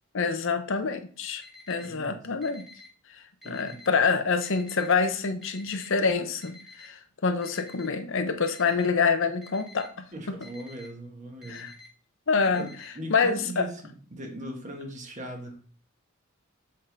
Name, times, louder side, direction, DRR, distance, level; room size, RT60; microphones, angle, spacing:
voice 1, 0.1-2.7 3.1-10.1 11.5-11.7 12.3-12.7 13.1-13.7, left 5 dB, 65° left, 8 dB, 0.7 m, -26 dB
Alarm, 1.4-1.9 2.4-2.9 3.4-3.9 4.4-4.9 5.4-5.9 6.4-6.9 7.4-7.9 8.4-8.9 9.4-9.9 10.4-10.9 11.4-11.9 12.4-12.9, left 2 dB, ahead, 1.5 m, -49 dB
voice 2, 1.8-2.2 3.4-3.9 10.1-11.7 12.5-15.6, right 1 dB, 35° right, 2 dB, 1.3 m, -39 dB
7.6 x 3.7 x 3.9 m, 0.42 s
head